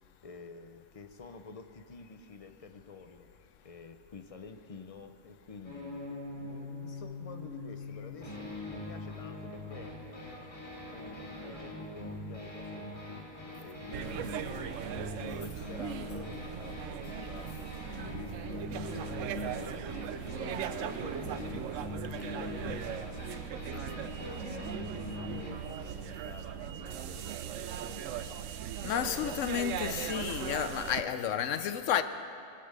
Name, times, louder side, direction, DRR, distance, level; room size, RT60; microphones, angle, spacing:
voice 1, 0.2-13.1 13.6-17.6 18.0-28.4 29.0-30.4 30.9-31.7, left 4 dB, 45° left, 0.5 m, -50 dB
sound 1, 5.6-25.5, left 2 dB, 25° left, 3.0 m, -42 dB
sound 2, 13.9-31.0, right 10 dB, 75° right, 0.9 m, -39 dB
voice 2, 28.8-32.0, left 9 dB, 70° left, 0.9 m, -31 dB
19.5 x 6.8 x 6.6 m
omnidirectional pair, 1.4 m